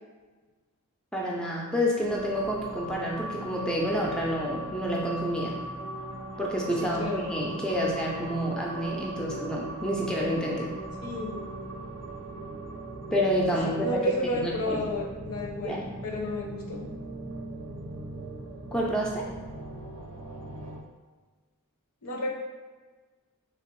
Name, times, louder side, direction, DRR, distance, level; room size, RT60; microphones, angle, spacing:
voice 1, 1.1-5.6 6.4-10.7 13.1-14.0 14.4-14.8 15.6-15.8 18.7-19.3, equal, 5° left, -3 dB, 0.4 m, -29 dB
sound 1, 2.0-20.8, right 2 dB, 70° right, 0.5 m, -39 dB
voice 2, 6.8-7.3 11.0-11.4 13.6-16.9 22.0-22.3, left 1 dB, 75° left, 0 dB, 0.6 m, -32 dB
3.3 x 2.8 x 3.1 m, 1.3 s
head